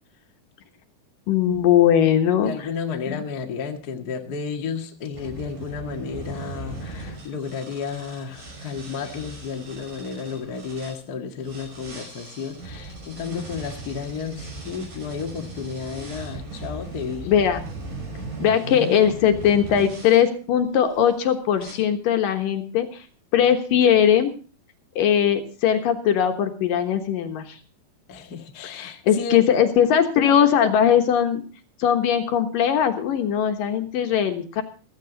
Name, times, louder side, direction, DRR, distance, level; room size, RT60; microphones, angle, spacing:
voice 1, 1.3-2.7 3.1-3.2 17.2-17.7 18.4-23.0 23.3-24.3 25.0-27.6 28.7-31.4 31.8-34.6, left 9 dB, 65° left, 7 dB, 2.8 m, -20 dB
voice 2, 2.4-17.3 28.1-29.5, left 6 dB, 40° left, 4 dB, 1.5 m, -32 dB
sound 1, 5.1-11.0 11.4-20.2 20.9-21.2 21.6-21.7, right 3 dB, 55° right, 7.6 m, -38 dB
15.5 x 15.5 x 4.0 m, 0.38 s
omnidirectional pair, 4.5 m